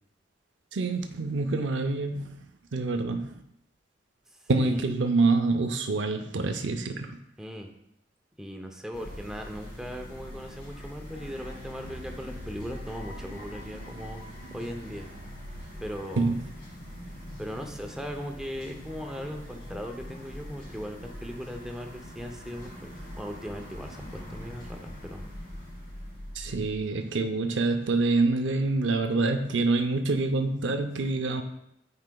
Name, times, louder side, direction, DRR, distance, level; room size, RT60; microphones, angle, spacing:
voice 1, 0.7-2.3 2.7-3.4 4.5-7.2 16.2-16.4 26.3-31.4, right 3 dB, 80° right, 6 dB, 0.6 m, -26 dB
voice 2, 4.4-4.8 7.4-7.7 8.4-14.2 14.5-15.1 15.8-16.3 17.4-22.9 23.2-25.3, equal, 5° right, 3 dB, 0.6 m, -38 dB
sound 1, 8.9-26.8, equal, 60° left, 1.8 m, -42 dB
9.5 x 4.7 x 2.3 m, 0.78 s
head